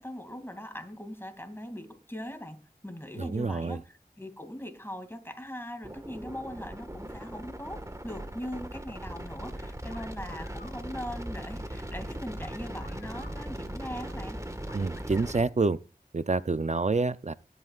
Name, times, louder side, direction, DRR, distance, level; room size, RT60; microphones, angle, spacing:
voice 1, 0.0-3.8 4.2-14.4, equal, 15° left, 2.5 m, -40 dB
voice 2, 3.2-3.8 14.7-15.8 16.1-17.3, right 3 dB, 45° right, 0.5 m, -27 dB
sound 1, 5.8-15.4, right 1 dB, 20° right, 1.6 m, -39 dB
sound 2, 9.9-10.8 12.4-13.4 14.7-15.4, left 4 dB, 90° left, 1.6 m, -52 dB
20.0 x 9.4 x 2.4 m
wide cardioid pair, 45°, 16 cm